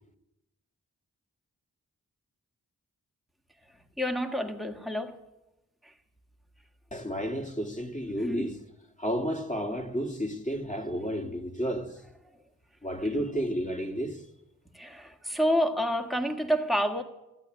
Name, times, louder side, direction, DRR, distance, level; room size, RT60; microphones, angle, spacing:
voice 1, 4.0-5.2 5.8-5.9 8.2-8.5 12.3-12.4 14.7-17.0, equal, ahead, 1.7 m, -29 dB
voice 2, 6.9-8.6 9.0-12.0 12.8-14.3, equal, 20° left, 2.1 m, -32 dB
14.5 x 8.4 x 9.1 m
cardioid pair, 40°, 35 cm